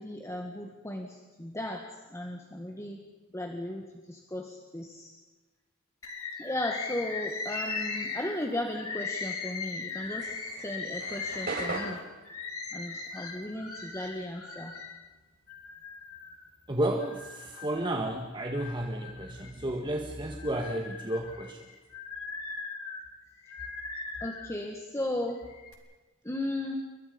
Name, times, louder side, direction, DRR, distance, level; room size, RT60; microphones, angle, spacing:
voice 1, 0.0-3.0 3.3-5.1 6.4-10.3 10.6-12.0 12.7-14.7 24.2-25.4 26.2-26.9, left 1 dB, 15° left, 2 dB, 1.8 m, -36 dB
Bird, 6.0-14.9 15.5-16.5 17.0-18.0 18.4-19.8 20.3-24.6 25.3-25.7, left 4 dB, 85° left, 3.9 m, -39 dB
sound 1, 10.0-14.8 15.0-17.0, right 3 dB, 45° right, 6.2 m, -40 dB
voice 2, 16.7-21.7, right 1 dB, 20° right, 2 dB, 1.7 m, -32 dB
29.0 x 23.5 x 5.3 m, 1.2 s
head